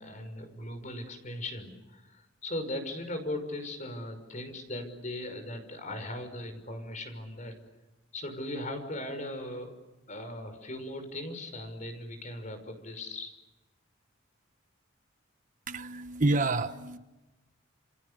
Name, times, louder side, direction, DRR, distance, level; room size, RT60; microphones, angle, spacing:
voice 1, 0.0-7.5 8.1-9.7 10.1-13.3, left 1 dB, 40° left, 8 dB, 5.9 m, -38 dB
voice 2, 15.7-17.0, right 2 dB, 40° right, 10 dB, 1.2 m, -28 dB
29.5 x 29.0 x 6.9 m, 1.0 s
head